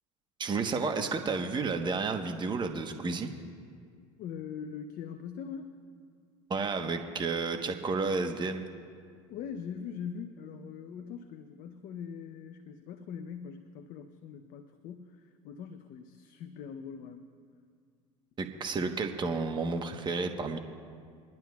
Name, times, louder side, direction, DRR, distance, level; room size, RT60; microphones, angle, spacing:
voice 1, 0.4-3.3 6.5-8.6 18.4-20.6, right 4 dB, 25° right, 5 dB, 1.2 m, -31 dB
voice 2, 4.2-5.7 9.3-17.3, left 7 dB, 55° left, 8 dB, 0.8 m, -42 dB
23.5 x 12.0 x 2.4 m, 2.1 s
hypercardioid pair, 80°, 17 cm